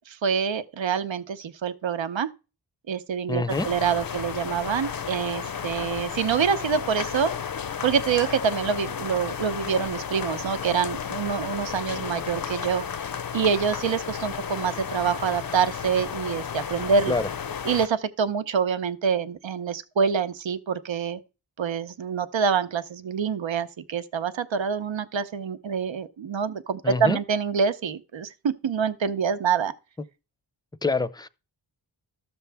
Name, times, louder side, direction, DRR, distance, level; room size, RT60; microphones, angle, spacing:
voice 1, 0.1-2.3 2.9-7.3 7.8-12.8 13.3-17.2 17.6-21.2 21.6-29.7, right 6 dB, 80° right, 0.8 m, -26 dB
voice 2, 3.3-3.7 17.1-17.3 26.8-27.2 30.8-31.3, left 3 dB, 10° left, 0.6 m, -26 dB
sound 1, 3.5-17.9, left 7 dB, 50° left, 0.6 m, -33 dB
13.0 x 7.0 x 3.4 m
wide cardioid pair, 65°, 45 cm